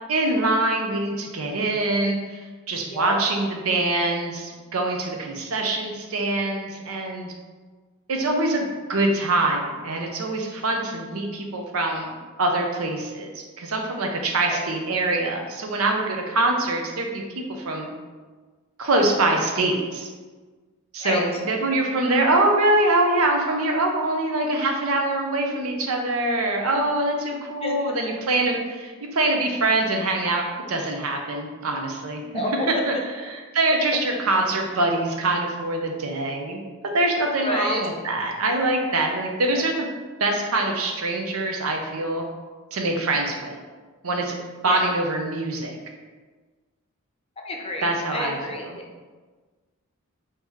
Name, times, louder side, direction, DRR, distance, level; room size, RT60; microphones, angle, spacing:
voice 1, 0.1-7.3 8.1-17.2 17.7-17.9 18.8-20.1 20.9-32.2 32.9-33.0 33.3-36.6 36.9-39.9 40.2-42.2 42.7-43.6 44.0-44.4 44.6-45.7 47.8-48.7, right 2 dB, 85° right, 2 dB, 0.7 m, -24 dB
voice 2, 32.3-32.8 37.4-37.8 39.5-39.7 44.7-44.9 47.4-48.8, left 1 dB, 25° left, 1 dB, 0.6 m, -29 dB
3.7 x 2.8 x 4.6 m, 1.4 s
head